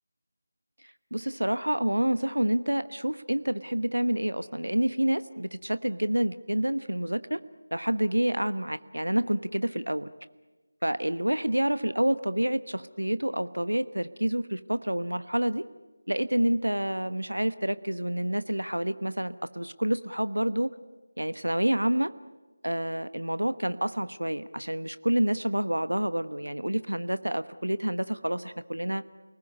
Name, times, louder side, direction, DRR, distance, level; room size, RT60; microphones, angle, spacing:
voice 1, 0.8-7.4 7.7-10.1 10.8-15.6 16.1-20.7 21.2-22.1 22.6-29.0, right 1 dB, 85° right, 13 dB, 1.1 m, -28 dB
29.0 x 19.5 x 9.6 m, 1.2 s
figure-of-eight pair, 165°, 0 cm